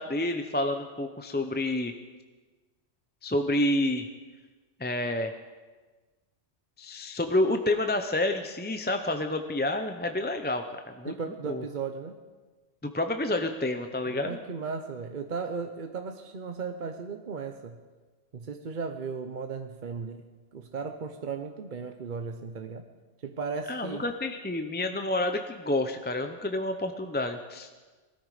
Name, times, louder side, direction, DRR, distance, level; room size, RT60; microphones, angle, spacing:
voice 1, 0.0-1.9 3.2-4.1 4.8-5.3 6.8-11.1 11.5-11.6 12.9-14.4 23.7-27.7, left 1 dB, 10° left, 6 dB, 0.5 m, -29 dB
voice 2, 11.1-12.2 14.1-17.8 18.3-20.2 20.5-22.8 23.2-24.0, right 5 dB, 45° right, 6 dB, 0.9 m, -36 dB
19.5 x 13.5 x 4.9 m, 1.3 s
omnidirectional pair, 1.2 m